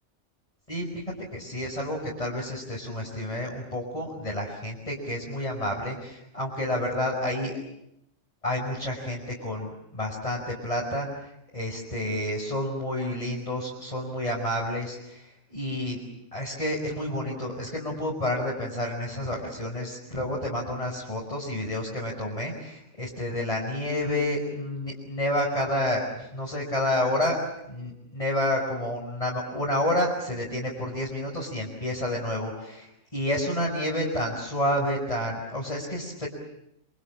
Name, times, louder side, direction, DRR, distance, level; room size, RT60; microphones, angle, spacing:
voice 1, 0.7-1.0 1.3-7.6 8.4-16.0 16.3-27.4 27.7-36.3, left 1 dB, 25° left, -3 dB, 5.5 m, -29 dB
27.5 x 26.5 x 7.4 m, 0.81 s
omnidirectional pair, 1.4 m